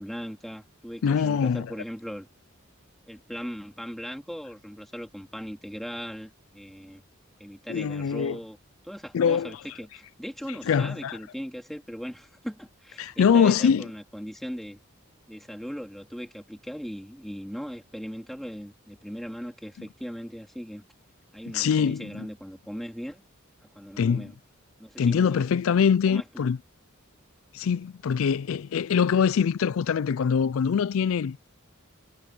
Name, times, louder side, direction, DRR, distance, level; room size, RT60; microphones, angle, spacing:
voice 1, 0.0-2.3 3.1-7.0 7.4-8.6 8.8-14.8 15.3-20.8 21.3-23.2 23.7-24.4 24.8-25.5 26.1-26.5, equal, ahead, 2.5 m, -39 dB
voice 2, 1.0-1.7 7.7-8.4 9.1-9.6 10.5-11.2 13.0-13.9 21.5-22.3 24.0-24.3 25.0-26.6 27.5-31.5, left 7 dB, 70° left, 0.4 m, -23 dB
head